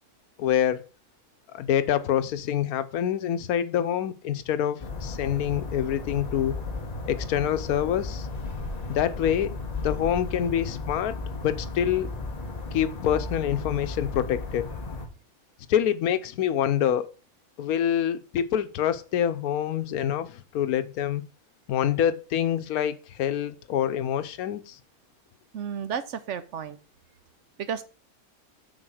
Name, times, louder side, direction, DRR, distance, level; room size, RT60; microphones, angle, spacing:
voice 1, 0.4-0.9 1.5-6.6 7.1-8.3 8.9-12.1 12.7-14.7 15.7-17.1 17.6-21.2 21.7-24.8, left 10 dB, 90° left, 1.2 m, -26 dB
sound 1, 4.8-15.1, left 3 dB, 30° left, 1.0 m, -35 dB
voice 2, 25.5-26.8 27.6-27.8, right 7 dB, 65° right, 0.9 m, -32 dB
6.3 x 4.1 x 6.3 m
omnidirectional pair, 1.5 m